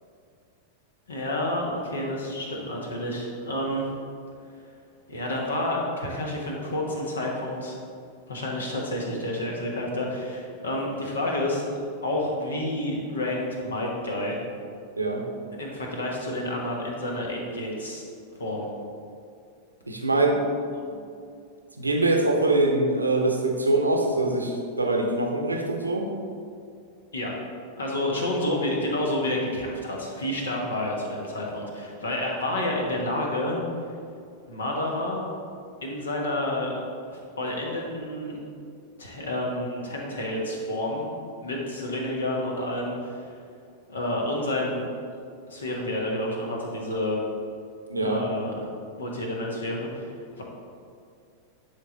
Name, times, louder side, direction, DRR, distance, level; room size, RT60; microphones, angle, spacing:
voice 1, 1.1-3.8 5.1-7.8 8.3-11.6 12.0-14.4 15.6-18.0 18.4-18.7 20.7-20.8 27.1-27.3 27.8-33.6 34.5-35.2 35.8-36.7 37.1-38.4 39.0-41.0 41.4-43.3 43.9-44.8 45.5-47.2 48.0-48.6 49.0-50.4, left 1 dB, 70° left, -1 dB, 1.4 m, -29 dB
voice 2, 19.9-20.4 21.8-26.0 47.9-48.2, right 2 dB, 80° right, 2 dB, 0.8 m, -23 dB
10.5 x 3.9 x 3.9 m, 2.4 s
figure-of-eight pair, 90°, 0 cm